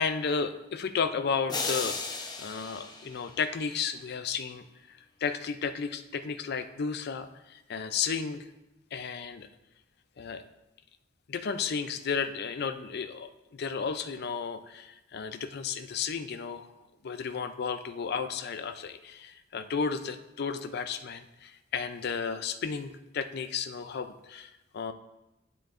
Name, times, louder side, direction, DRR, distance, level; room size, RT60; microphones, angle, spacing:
voice 1, 0.0-8.4 8.9-9.5 10.2-10.4 11.3-16.7 17.0-24.9, left 6 dB, 55° left, 10 dB, 0.4 m, -33 dB
sound 1, 1.5-3.8, left 3 dB, 20° left, 0.8 m, -35 dB
9.7 x 7.6 x 2.5 m, 0.96 s
head